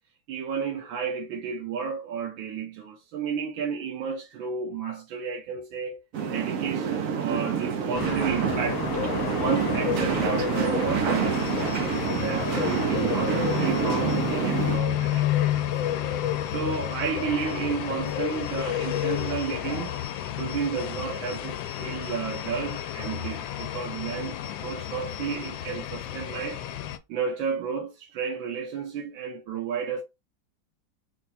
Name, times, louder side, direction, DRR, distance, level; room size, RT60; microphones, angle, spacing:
voice 1, 0.3-15.7 16.5-20.0 20.3-26.6 27.1-30.0, right 6 dB, 85° right, 1.6 m, -32 dB
sound 1, 6.1-14.8, right 6 dB, 65° right, 0.8 m, -27 dB
sound 2, 7.9-27.0, left 11 dB, 85° left, 1.3 m, -30 dB
4.4 x 2.3 x 4.0 m
omnidirectional pair, 2.1 m